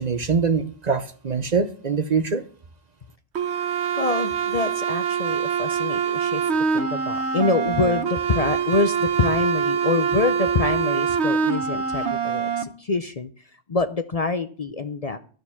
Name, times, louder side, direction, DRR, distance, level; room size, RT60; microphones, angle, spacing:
voice 1, 0.0-2.5, right 5 dB, 45° right, 11 dB, 0.8 m, -23 dB
sound 1, 3.3-12.6, right 7 dB, 75° right, 1.3 m, -24 dB
voice 2, 4.0-13.3 13.7-15.2, left 3 dB, 40° left, 10 dB, 0.6 m, -26 dB
12.0 x 6.6 x 7.1 m, 0.43 s
omnidirectional pair, 1.1 m